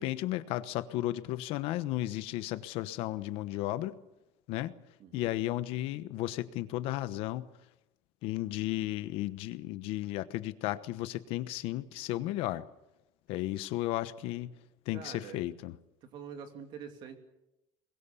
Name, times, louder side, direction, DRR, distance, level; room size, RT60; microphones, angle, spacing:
voice 1, 0.0-4.0 4.5-4.7 5.1-7.5 8.2-12.6 13.3-14.5 14.9-15.8, left 15 dB, 65° left, 13 dB, 1.1 m, -34 dB
voice 2, 5.0-5.3 14.9-15.4 16.0-17.2, right 7 dB, 50° right, 6 dB, 2.8 m, -45 dB
22.5 x 21.0 x 7.0 m, 0.90 s
cardioid pair, 170°, 10 cm